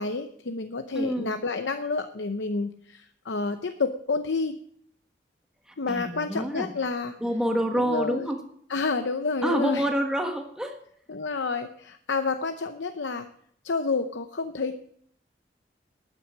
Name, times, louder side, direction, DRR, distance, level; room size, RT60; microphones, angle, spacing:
voice 1, 0.0-4.6 5.8-7.2 7.7-8.3 8.7-9.9 11.1-13.3 13.6-14.7, left 4 dB, 90° left, 8 dB, 0.7 m, -29 dB
voice 2, 0.9-1.4 5.7-6.7 7.2-8.4 9.4-10.8, equal, 5° right, 3 dB, 1.4 m, -27 dB
12.5 x 9.2 x 6.3 m, 0.66 s
head